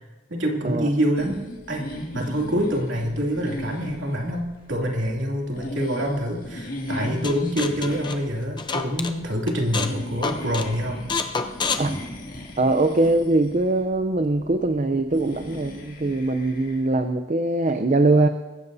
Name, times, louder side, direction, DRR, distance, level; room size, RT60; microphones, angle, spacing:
voice 1, 0.3-1.4 1.7-1.9 2.1-11.1, equal, 75° right, -1 dB, 2.7 m, -26 dB
sound 1, 1.1-16.9, equal, 45° left, 2.2 m, -37 dB
sound 2, 7.2-9.1 9.5-10.0 10.2-10.7 11.1-12.7, left 4 dB, 25° left, 0.6 m, -28 dB
voice 2, 12.6-18.3, right 2 dB, 40° right, 8 dB, 0.6 m, -22 dB
23.0 x 15.0 x 2.7 m, 1.2 s
head